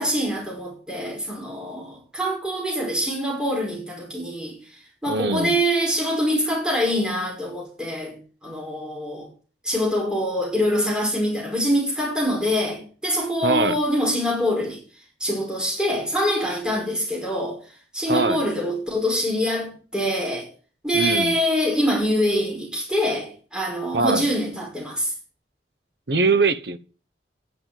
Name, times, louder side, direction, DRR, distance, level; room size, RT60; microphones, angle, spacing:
voice 1, 0.0-9.3 9.6-14.8 15.2-17.6 17.9-20.5 20.8-25.1, equal, 5° right, 5.4 m, -24 dB
voice 2, 5.1-5.5 13.4-13.8 18.1-18.4 20.9-21.3 23.9-24.2 26.1-26.8, right 4 dB, 70° right, 1.1 m, -22 dB
9.9 x 8.0 x 9.0 m
head